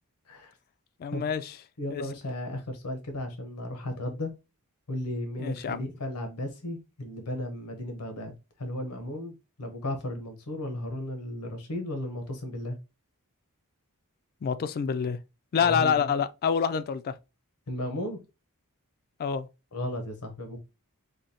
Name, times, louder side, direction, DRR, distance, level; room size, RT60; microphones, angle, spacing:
voice 1, 1.0-1.5 1.9-2.0 5.4-5.8 14.4-15.2 15.5-17.1 19.2-19.5, left 7 dB, 45° left, 0.3 m, -27 dB
voice 2, 1.8-4.3 4.9-8.3 8.6-12.8 15.6-16.1 17.7-18.2 19.7-20.6, left 1 dB, 90° left, 0.9 m, -35 dB
5.0 x 2.3 x 2.7 m
head